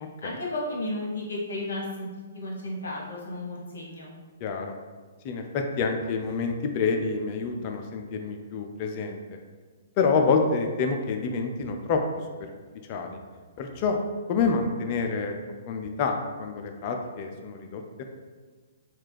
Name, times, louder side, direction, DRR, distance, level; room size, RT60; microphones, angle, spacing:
voice 1, 0.2-2.1 2.3-4.1, left 1 dB, 60° left, -2 dB, 1.1 m, -33 dB
voice 2, 4.4-4.7 5.2-9.2 10.0-12.0 12.9-13.1 13.6-14.0 14.3-15.4 15.7-18.0, left 4 dB, 35° left, 4 dB, 0.4 m, -27 dB
4.4 x 2.3 x 3.3 m, 1.4 s
figure-of-eight pair, 120°, 0 cm